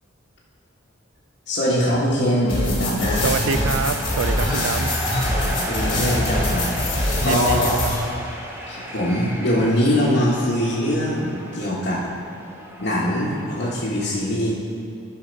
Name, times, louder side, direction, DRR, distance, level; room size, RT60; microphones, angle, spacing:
voice 1, 1.5-3.7 5.4-6.7 7.2-7.8 8.7-12.0 12.8-14.5, equal, 50° left, -9 dB, 1.4 m, -22 dB
sound 1, 2.3-13.8, equal, 10° right, 0.8 m, -34 dB
sound 2, 2.5-8.0, left 1 dB, 25° left, 1.9 m, -24 dB
voice 2, 3.1-4.9 7.2-7.9, right 6 dB, 70° right, 11 dB, 0.4 m, -26 dB
10.0 x 5.7 x 5.3 m, 2.7 s
head